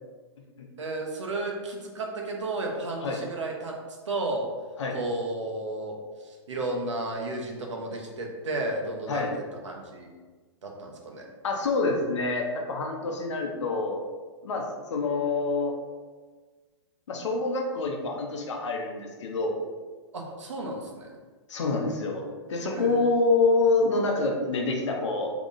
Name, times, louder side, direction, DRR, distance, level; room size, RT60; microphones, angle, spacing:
voice 1, 0.8-3.8 4.1-4.5 4.9-9.3 9.6-10.2 10.6-11.3 20.1-21.2 22.7-23.1, right 2 dB, 90° right, 0 dB, 0.8 m, -33 dB
voice 2, 11.4-14.0 14.4-15.7 17.1-19.5 21.5-22.2 22.5-25.3, left 3 dB, 80° left, 1 dB, 0.7 m, -26 dB
3.7 x 2.9 x 2.5 m, 1.4 s
hypercardioid pair, 125°, 15 cm